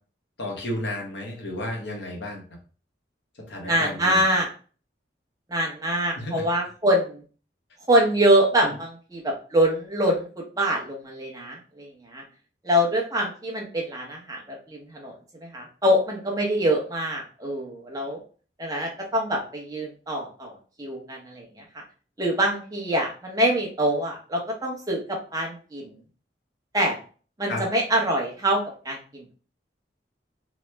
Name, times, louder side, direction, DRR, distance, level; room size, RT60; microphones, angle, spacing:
voice 1, 0.4-2.4 3.5-4.2 6.1-6.4 8.6-8.7 27.5-27.6, left 1 dB, 85° left, 0 dB, 1.0 m, -32 dB
voice 2, 3.7-4.5 5.5-7.2 7.9-12.2 12.6-18.2 18.6-21.8 22.2-26.0 26.7-27.0 27.4-29.3, right 1 dB, 20° right, -1 dB, 0.7 m, -25 dB
3.0 x 2.0 x 3.2 m, 0.39 s
head